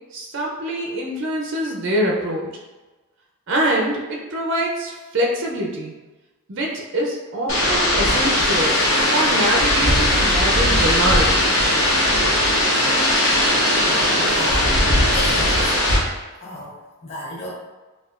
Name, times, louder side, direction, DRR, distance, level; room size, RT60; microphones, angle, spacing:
voice 1, 0.1-2.5 3.5-5.9 6.5-11.5, right 1 dB, 55° right, -1 dB, 0.5 m, -24 dB
sound 1, 7.5-16.0, left 1 dB, 60° left, 1.0 m, -18 dB
voice 2, 14.1-14.7 15.1-15.7 16.4-16.7 17.0-17.5, equal, 25° left, -8 dB, 0.7 m, -32 dB
4.7 x 2.3 x 2.4 m, 1.2 s
head